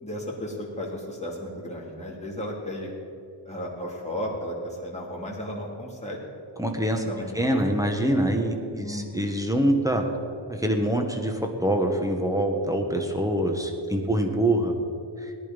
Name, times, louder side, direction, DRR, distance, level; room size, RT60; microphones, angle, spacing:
voice 1, 0.0-2.9 3.4-6.3 6.8-7.6 8.8-9.3 14.0-14.2, left 1 dB, 15° left, -4 dB, 3.0 m, -34 dB
voice 2, 6.6-7.0 7.3-10.0 10.5-14.7 15.2-15.3, right 1 dB, 5° right, 3 dB, 1.6 m, -25 dB
18.0 x 10.5 x 5.4 m, 2.6 s
wide cardioid pair, 95°, 46 cm